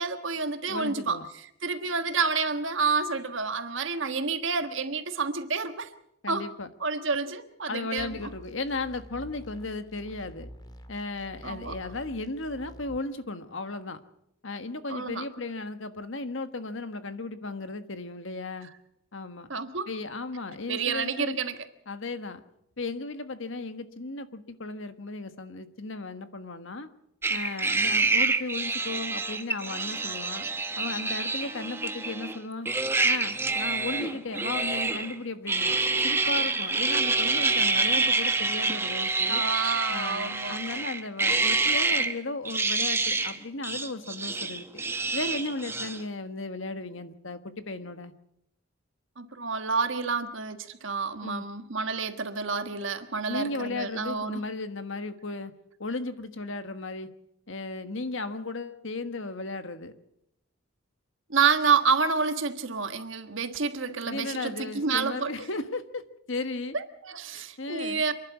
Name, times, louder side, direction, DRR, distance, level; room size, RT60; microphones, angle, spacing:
voice 1, 0.0-5.9 6.3-6.5 6.8-8.3 11.4-11.8 14.9-15.2 19.5-19.9 20.7-21.6 39.3-40.6 49.2-54.4 61.3-65.3 66.7-68.1, right 5 dB, 60° right, 9 dB, 1.4 m, -29 dB
voice 2, 0.7-1.2 6.2-6.7 7.7-10.5 10.9-14.0 14.4-18.7 19.1-19.5 19.9-21.4 21.9-22.4 22.8-26.9 27.3-30.5 30.8-32.7 33.0-35.8 36.0-39.4 39.9-44.7 45.1-48.1 51.2-51.4 53.3-55.5 55.8-57.1 57.5-59.9 64.0-66.0 66.3-66.8 67.3-68.0, left 3 dB, 65° left, 10 dB, 1.4 m, -35 dB
sound 1, 8.0-13.0, equal, 20° left, 1.8 m, -47 dB
sound 2, 27.2-32.4 32.7-35.1 35.5-42.1 42.5-43.4 43.6-46.0, right 3 dB, 10° right, 1.0 m, -27 dB
27.5 x 11.5 x 8.3 m, 0.79 s
head